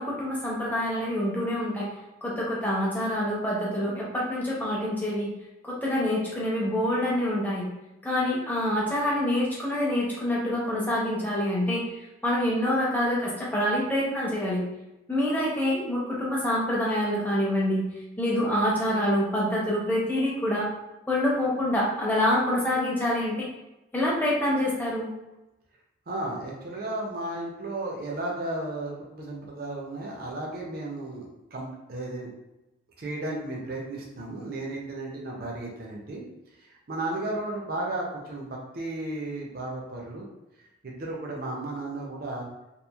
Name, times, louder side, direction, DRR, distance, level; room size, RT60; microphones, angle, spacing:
voice 1, 0.0-1.9 2.2-5.3 5.6-7.6 8.0-11.8 12.2-14.6 15.1-17.9 18.2-20.7 21.1-23.5 23.9-25.1, left 1 dB, 10° left, -5 dB, 0.6 m, -26 dB
voice 2, 26.1-32.3 33.0-36.2 36.9-40.2 40.8-42.5, right 2 dB, 50° right, -2 dB, 0.5 m, -34 dB
2.9 x 2.4 x 2.3 m, 0.98 s
head